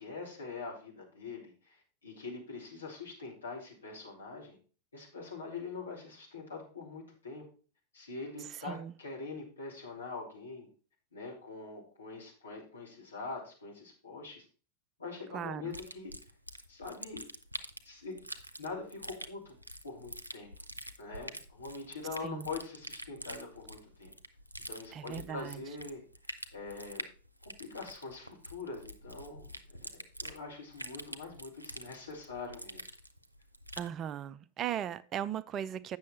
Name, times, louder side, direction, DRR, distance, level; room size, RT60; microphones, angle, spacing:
voice 1, 0.0-4.6 4.9-7.4 7.9-10.7 11.1-14.5 15.0-16.1 16.7-17.2 17.8-18.1 18.6-19.5 19.8-20.5 21.0-24.1 24.7-26.0 26.5-27.1 27.4-29.8 30.2-32.9, left 4 dB, 75° left, 3.0 m, -43 dB
voice 2, 8.6-8.9 15.3-15.7 22.2-22.5 24.9-25.6 33.8-36.0, right 9 dB, 30° right, 0.4 m, -37 dB
sound 1, 15.7-33.9, right 1 dB, 85° right, 0.6 m, -46 dB
8.4 x 6.3 x 4.2 m
figure-of-eight pair, 90°, 0 cm